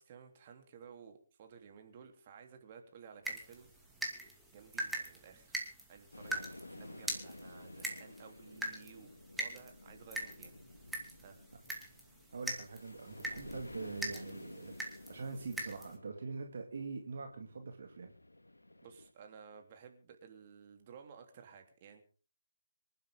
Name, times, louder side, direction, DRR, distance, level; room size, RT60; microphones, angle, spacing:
voice 1, 0.0-3.7 4.5-5.6 5.9-10.5 11.2-11.4 18.8-22.0, right 6 dB, 30° right, 4 dB, 3.4 m, -55 dB
sound 1, 3.2-16.0, right 1 dB, 5° right, 2.6 m, -43 dB
sound 2, 6.1-19.1, left 2 dB, 80° left, 1.7 m, -53 dB
voice 2, 12.3-14.7 15.1-18.1, right 4 dB, 55° right, 5 dB, 2.2 m, -43 dB
25.5 x 12.0 x 3.8 m, 0.38 s
figure-of-eight pair, 145°, 0 cm